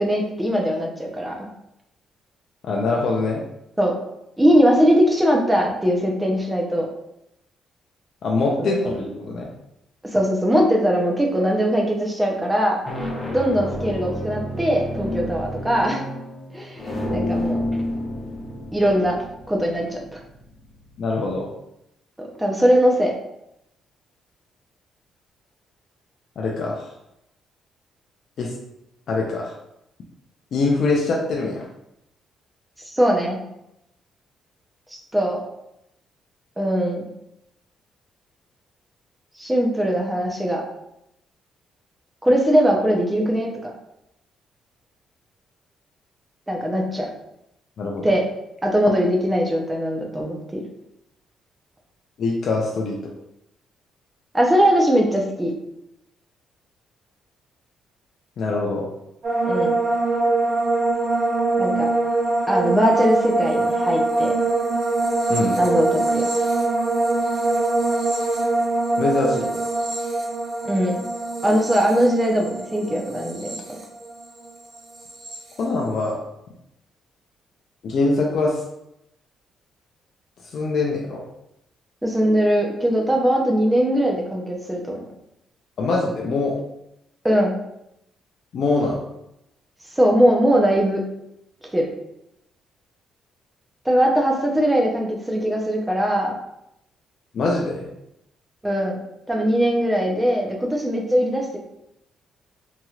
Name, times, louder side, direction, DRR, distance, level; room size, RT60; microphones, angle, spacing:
voice 1, 0.0-1.4 3.8-4.0 4.4-6.9 8.6-8.9 10.1-12.8 13.3-16.0 16.5-17.6 18.7-19.2 19.5-20.2 22.4-23.1 32.9-33.4 35.1-35.4 36.6-37.0 39.4-40.6 42.2-43.7 46.5-47.1 48.0-48.2 48.6-50.6 54.3-55.5 59.5-59.7 61.6-61.9 62.5-64.3 65.6-66.3 70.6-71.1 71.4-73.6 82.0-85.0 87.2-87.5 89.9-91.0 91.7-91.9 93.8-96.3 98.6-99.0 99.3-101.6, equal, 10° right, -1 dB, 0.7 m, -20 dB
voice 2, 2.6-3.4 8.2-9.5 21.0-21.5 26.4-26.9 28.4-28.5 29.1-29.5 30.5-31.6 47.8-48.0 52.2-53.0 58.4-58.8 65.3-65.6 69.0-69.5 75.6-76.2 77.8-78.6 80.5-81.2 85.8-86.6 88.5-89.0 97.3-97.9, left 3 dB, 60° left, -1 dB, 0.5 m, -23 dB
sound 1, 12.8-21.2, left 1 dB, 25° left, 1.0 m, -30 dB
sound 2, 59.2-74.5 74.7-75.4, right 2 dB, 55° right, 0.9 m, -23 dB
2.9 x 2.9 x 2.4 m, 0.83 s
cardioid pair, 90°, 0 cm